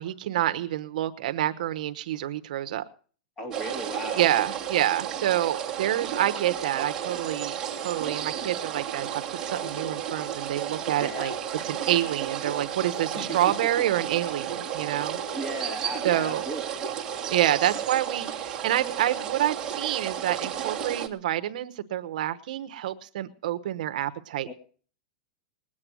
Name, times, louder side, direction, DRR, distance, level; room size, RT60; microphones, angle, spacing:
voice 1, 0.0-2.8 4.1-9.1 9.4-11.3 11.6-15.2 16.0-16.4 17.3-24.5, right 12 dB, 55° right, 1.0 m, -27 dB
voice 2, 3.4-4.2 11.0-11.4 13.2-13.9 15.3-16.6 24.4-24.5, right 2 dB, 15° left, 2.7 m, -35 dB
sound 1, 3.5-21.1, right 9 dB, 10° right, 1.7 m, -33 dB
20.5 x 8.7 x 6.2 m
supercardioid pair, 180°, 5 cm